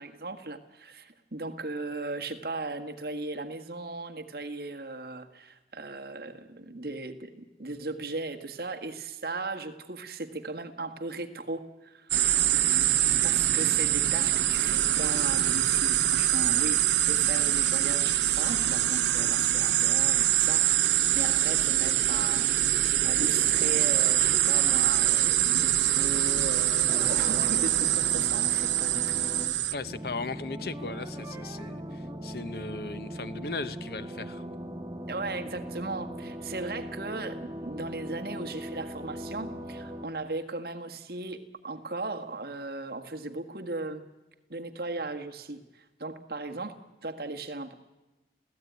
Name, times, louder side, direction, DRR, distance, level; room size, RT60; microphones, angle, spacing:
voice 1, 0.0-12.1 13.2-22.7 23.0-29.6 35.1-44.1 44.5-47.7, right 2 dB, 55° right, 5 dB, 1.6 m, -37 dB
sound 1, 12.1-29.8, right 12 dB, 85° right, 0.8 m, -24 dB
sound 2, 20.2-25.2, right 1 dB, 25° left, 5.6 m, -52 dB
sound 3, 26.9-40.1, equal, 20° right, 1.4 m, -39 dB
voice 2, 29.7-34.4, left 3 dB, 60° left, 13 dB, 0.8 m, -37 dB
28.5 x 16.0 x 9.4 m, 1.1 s
head